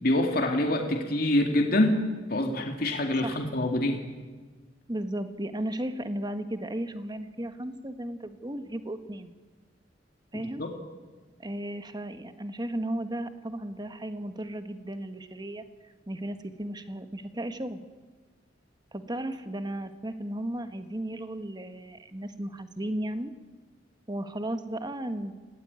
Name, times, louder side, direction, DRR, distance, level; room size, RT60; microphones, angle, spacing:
voice 1, 0.0-2.0 2.3-4.0 10.6-10.7, left 1 dB, 55° left, 3 dB, 2.5 m, -25 dB
voice 2, 4.9-9.3 10.3-10.6 11.4-15.6 16.1-17.8 18.9-23.3 24.1-25.3, right 1 dB, 25° right, 9 dB, 1.5 m, -35 dB
28.0 x 18.0 x 9.7 m, 1.3 s
head